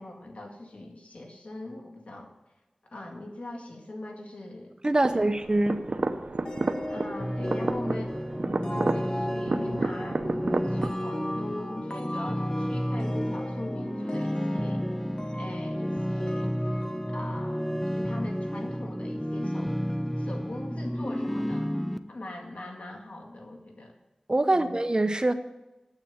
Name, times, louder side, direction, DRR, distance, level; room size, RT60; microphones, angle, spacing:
voice 1, 0.0-2.3 2.8-4.8 5.0-5.3 6.9-8.2 8.6-14.9 15.3-16.6 17.1-19.9 20.2-21.7 22.1-23.9 24.5-24.7, left 2 dB, 85° left, 2 dB, 2.0 m, -41 dB
voice 2, 4.8-5.8 24.3-25.3, right 2 dB, 35° right, 9 dB, 0.9 m, -24 dB
sound 1, 5.0-10.9, right 2 dB, 70° right, 0.8 m, -31 dB
sound 2, 6.5-18.9, left 1 dB, 40° left, 1.3 m, -39 dB
sound 3, 7.2-22.0, equal, 5° left, 0.6 m, -31 dB
9.1 x 8.3 x 8.6 m, 1.0 s
wide cardioid pair, 70°, 2 cm